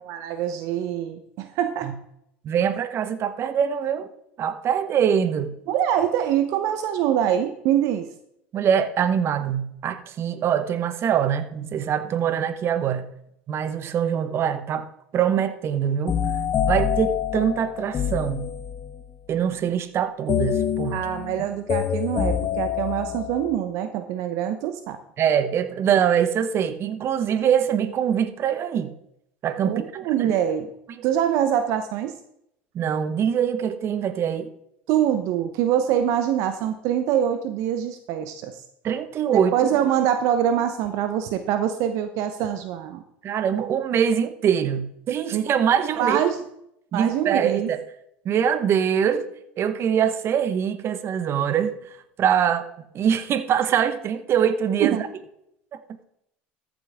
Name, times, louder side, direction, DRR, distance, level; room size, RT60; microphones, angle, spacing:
voice 1, 0.1-1.9 5.7-8.1 20.9-25.0 29.6-30.7 31.0-32.2 34.9-38.6 39.3-43.0 45.3-45.5 46.0-46.4 46.9-47.7 54.8-55.0, right 10 dB, 65° right, 9 dB, 0.9 m, -24 dB
voice 2, 2.4-4.1 4.4-5.5 8.5-13.1 13.5-14.9 15.1-16.2 16.6-18.5 19.3-21.0 25.2-28.9 29.4-29.8 30.2-30.3 30.9-31.0 32.7-34.5 38.8-39.5 43.2-46.2 46.9-47.8 48.2-49.3 49.6-52.7 52.9-55.0 55.7-55.8, right 8 dB, 45° right, 12 dB, 1.1 m, -23 dB
sound 1, 16.1-19.1 20.3-23.6, left 9 dB, 40° left, 1.1 m, -26 dB
14.0 x 9.1 x 3.6 m, 0.77 s
hypercardioid pair, 85°, 6 cm